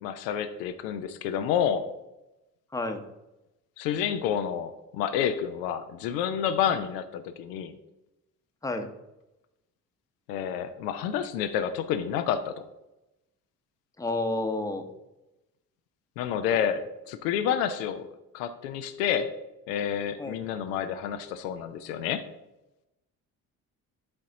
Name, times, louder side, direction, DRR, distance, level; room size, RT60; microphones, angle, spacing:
voice 1, 0.0-1.9 3.8-7.7 10.3-12.5 16.2-18.1 18.3-19.3 19.7-22.2, left 8 dB, 75° left, 8 dB, 0.7 m, -29 dB
voice 2, 14.0-14.8 20.2-20.5, left 2 dB, 5° left, 5 dB, 0.9 m, -30 dB
11.0 x 4.1 x 3.9 m, 0.95 s
figure-of-eight pair, 45°, 48 cm